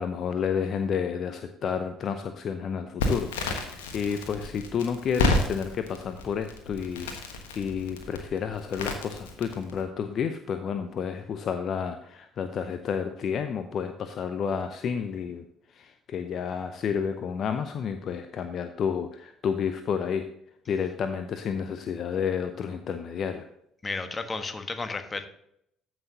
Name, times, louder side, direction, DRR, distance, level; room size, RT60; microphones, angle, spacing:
voice 1, 0.0-20.3 20.7-23.5, left 7 dB, 50° left, 9 dB, 0.6 m, -31 dB
Crackle, 3.0-9.8, left 2 dB, 75° left, 1.3 m, -31 dB
voice 2, 23.8-25.3, left 3 dB, 25° left, 8 dB, 1.3 m, -33 dB
14.0 x 6.1 x 2.8 m, 0.74 s
figure-of-eight pair, 50°, 0 cm